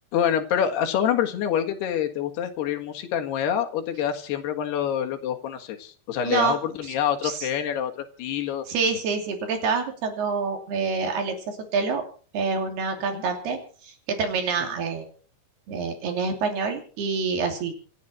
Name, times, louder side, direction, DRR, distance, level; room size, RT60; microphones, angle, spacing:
voice 1, 0.1-8.7 13.1-13.2, left 9 dB, 75° left, 4 dB, 3.7 m, -26 dB
voice 2, 6.2-6.6 7.2-7.5 8.7-12.0 12.3-15.1 15.7-17.7, right 5 dB, 70° right, 4 dB, 4.8 m, -27 dB
27.5 x 10.5 x 4.4 m, 0.43 s
omnidirectional pair, 4.7 m